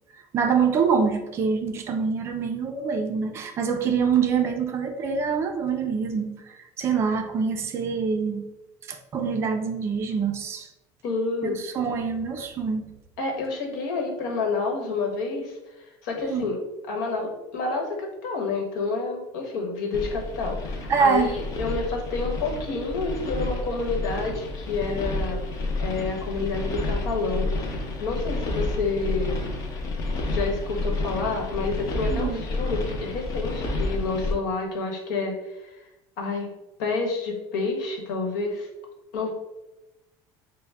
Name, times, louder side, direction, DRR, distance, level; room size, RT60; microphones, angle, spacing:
voice 1, 0.3-6.4 6.8-8.5 8.9-10.7 11.4-12.9 16.3-16.5 20.9-21.3 32.1-32.4, right 6 dB, 25° right, 5 dB, 0.4 m, -25 dB
voice 2, 11.0-11.6 13.2-16.6 16.9-25.4 25.8-27.5 28.0-29.4 30.3-35.7 36.2-36.5 36.8-38.7 39.1-39.3, left 3 dB, 90° left, 1 dB, 1.1 m, -29 dB
sound 1, 19.9-34.3, left 2 dB, 35° left, 0.6 m, -30 dB
5.4 x 2.1 x 3.4 m, 0.99 s
cardioid pair, 170°, 10 cm